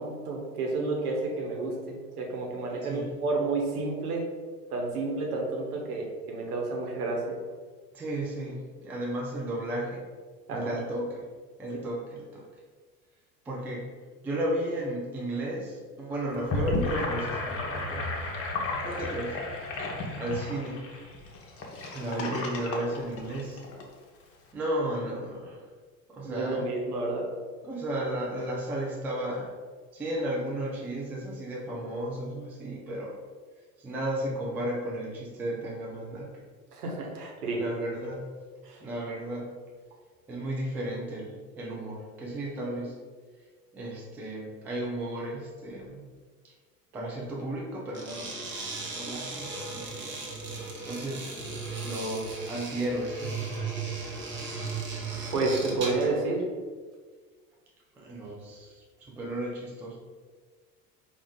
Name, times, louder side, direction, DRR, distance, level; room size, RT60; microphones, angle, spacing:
voice 1, 0.0-4.2 4.7-7.4 10.5-10.7 26.2-27.3 36.7-37.6 38.6-38.9 54.4-54.6 55.3-56.4, right 3 dB, 70° right, -1 dB, 1.1 m, -30 dB
voice 2, 2.8-3.1 7.9-10.0 10.5-11.3 11.6-12.5 13.4-13.9 14.2-18.1 18.8-19.4 20.2-20.8 21.9-23.6 24.5-25.7 26.1-26.7 27.6-29.5 29.9-33.2 33.8-36.3 37.6-38.3 38.8-39.5 40.3-43.0 43.7-46.0 46.4-46.5 46.9-50.2 50.8-51.3 51.8-53.7 58.0-60.0, right 1 dB, 5° right, -3 dB, 0.3 m, -34 dB
Gurgling / Sink (filling or washing), 16.3-23.8, left 2 dB, 30° left, 0.7 m, -33 dB
sound 1, 47.9-56.2, right 4 dB, 25° right, 1.0 m, -36 dB
4.6 x 2.3 x 3.8 m, 1.5 s
figure-of-eight pair, 75°, 47 cm